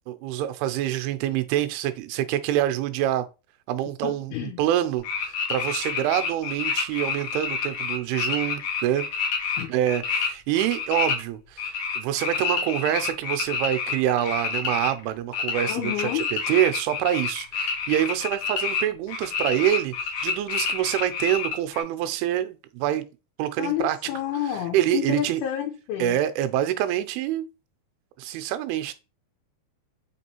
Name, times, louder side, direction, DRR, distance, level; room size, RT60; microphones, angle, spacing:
voice 1, 0.1-3.3 3.7-9.0 9.7-23.1 23.4-24.1 24.4-25.4 26.0-27.5 28.2-28.9, right 12 dB, 90° right, 2.5 m, -26 dB
voice 2, 4.0-4.6 9.6-9.7 15.7-16.3 23.6-26.2, left 11 dB, 85° left, 2.7 m, -29 dB
sound 1, 5.0-10.3 10.5-11.2 11.6-18.8 19.1-21.8, left 5 dB, 65° left, 1.7 m, -28 dB
5.9 x 3.0 x 2.8 m
omnidirectional pair, 4.4 m